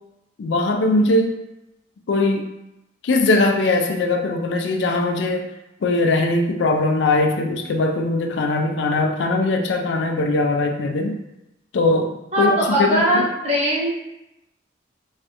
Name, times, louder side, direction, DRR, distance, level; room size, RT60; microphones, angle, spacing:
voice 1, 0.4-1.4 2.1-2.5 3.0-5.5 5.8-11.2 11.7-13.3, left 2 dB, 75° left, 4 dB, 0.4 m, -20 dB
voice 2, 12.3-14.0, equal, 35° right, -5 dB, 0.9 m, -20 dB
3.2 x 2.5 x 2.7 m, 0.90 s
head